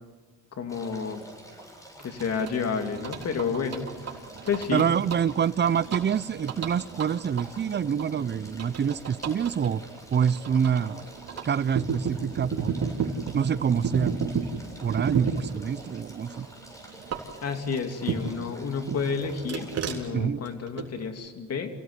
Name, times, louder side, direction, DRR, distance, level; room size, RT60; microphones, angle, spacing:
voice 1, 0.6-1.2 2.0-3.9 4.4-4.9 17.4-21.8, left 5 dB, 55° left, 5 dB, 2.9 m, -30 dB
sound 1, 0.7-20.0, right 1 dB, 10° left, 7.7 m, -48 dB
sound 2, 2.2-18.5 18.9-21.1, right 6 dB, 55° right, 3.6 m, -34 dB
voice 2, 4.7-9.8 10.1-11.1 11.4-12.7 13.3-14.3 14.8-16.5 20.1-20.4, right 7 dB, 35° right, 18 dB, 0.7 m, -26 dB
28.0 x 17.5 x 8.1 m, 1.4 s
cardioid pair, 90°, 30 cm